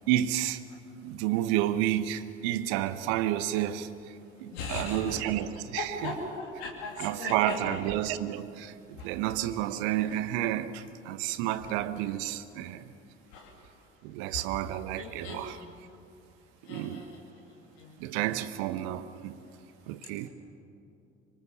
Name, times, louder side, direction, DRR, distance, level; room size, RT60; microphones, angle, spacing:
voice 1, 0.1-0.6 1.0-6.2 7.0-12.9 14.0-15.6 16.7-17.0 18.0-19.4 19.9-20.3, right 13 dB, 60° right, 13 dB, 1.3 m, -31 dB
voice 2, 4.5-5.2 5.8-7.6 13.3-13.5 15.0-15.4 16.7-17.0 17.8-17.9, left 3 dB, 65° left, 0 dB, 2.8 m, -37 dB
25.5 x 24.0 x 7.2 m, 2.6 s
figure-of-eight pair, 60°, 36 cm